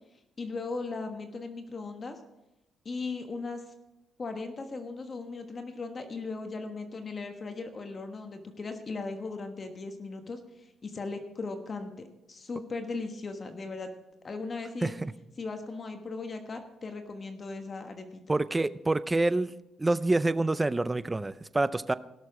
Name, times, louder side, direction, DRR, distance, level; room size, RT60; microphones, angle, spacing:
voice 1, 0.4-2.2 2.8-3.6 4.2-11.9 12.3-13.9 14.2-14.9 15.4-18.4, left 3 dB, 40° left, 6 dB, 1.3 m, -38 dB
voice 2, 14.8-15.1 18.3-19.5 19.8-21.9, right 2 dB, 15° right, 16 dB, 0.5 m, -27 dB
18.0 x 6.7 x 4.8 m, 0.93 s
cardioid pair, 90°, 0 cm